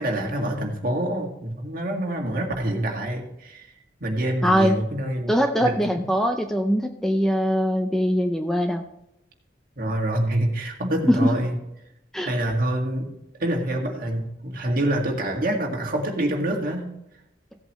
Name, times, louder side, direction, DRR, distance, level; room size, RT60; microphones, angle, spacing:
voice 1, 0.0-3.6 4.0-5.3 5.6-6.0 9.8-11.5 12.2-13.1 13.4-16.9, right 1 dB, 50° right, 1 dB, 1.9 m, -26 dB
voice 2, 4.4-4.8 5.3-8.8 11.1-11.3 12.1-12.3, equal, 5° left, 5 dB, 0.5 m, -22 dB
16.0 x 8.1 x 3.1 m, 0.83 s
head